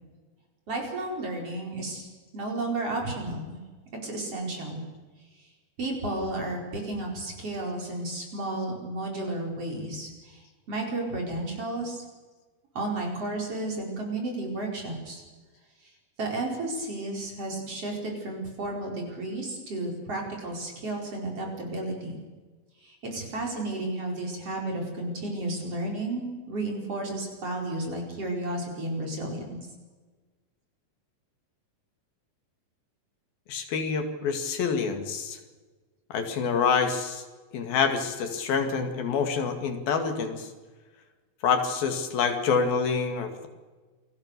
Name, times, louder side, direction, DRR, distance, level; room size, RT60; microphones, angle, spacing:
voice 1, 0.7-2.1 2.3-3.6 4.0-4.8 5.8-10.4 10.7-12.0 12.8-15.2 16.2-22.1 22.8-29.6, right 2 dB, 40° right, 0 dB, 5.8 m, -32 dB
voice 2, 33.5-35.4 36.1-37.2 37.5-40.5 41.4-43.5, left 5 dB, 75° left, 6 dB, 3.9 m, -27 dB
28.0 x 19.0 x 6.8 m, 1.3 s
omnidirectional pair, 4.2 m